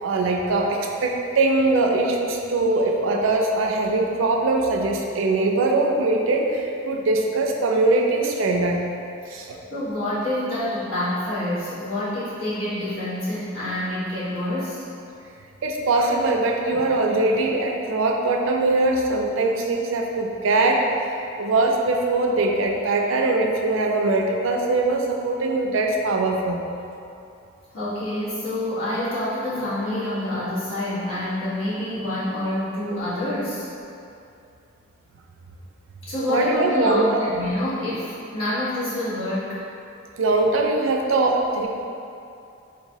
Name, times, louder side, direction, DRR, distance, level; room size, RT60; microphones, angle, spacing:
voice 1, 0.0-8.8 9.3-9.5 15.6-20.9 21.4-26.6 36.3-37.3 40.2-41.7, right 2 dB, 75° right, 1 dB, 0.4 m, -21 dB
voice 2, 9.7-14.8 27.7-33.7 36.0-39.6, left 1 dB, 90° left, -11 dB, 1.3 m, -27 dB
4.0 x 2.9 x 2.7 m, 2.6 s
head